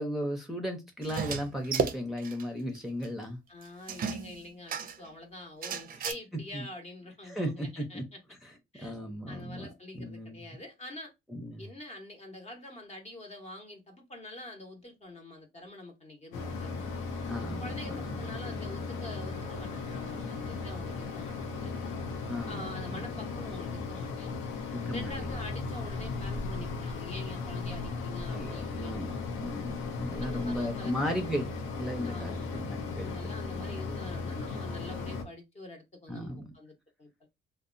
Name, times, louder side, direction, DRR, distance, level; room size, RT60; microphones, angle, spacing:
voice 1, 0.0-3.4 5.9-6.0 6.5-6.7 7.2-8.0 8.4-8.5 8.8-9.7 9.9-10.6 11.3-11.6 17.3-18.3 22.3-22.7 24.7-25.1 28.3-31.5 31.8-33.1 36.1-36.4, equal, ahead, 0.6 m, -36 dB
sound 1, 1.0-2.4 2.7-2.8 3.0-3.1 3.9-5.1 5.6-6.1, right 6 dB, 45° right, 0.4 m, -33 dB
voice 2, 3.5-8.2 8.7-8.9 9.3-11.1 11.6-16.7 17.6-21.7 22.5-24.5 24.9-29.0 30.2-31.4 32.0-32.7 33.0-37.1, left 1 dB, 35° left, 0.9 m, -46 dB
Mechanisms, 16.3-35.2, left 4 dB, 85° left, 0.6 m, -36 dB
2.7 x 2.1 x 2.5 m
cardioid pair, 90°, 20 cm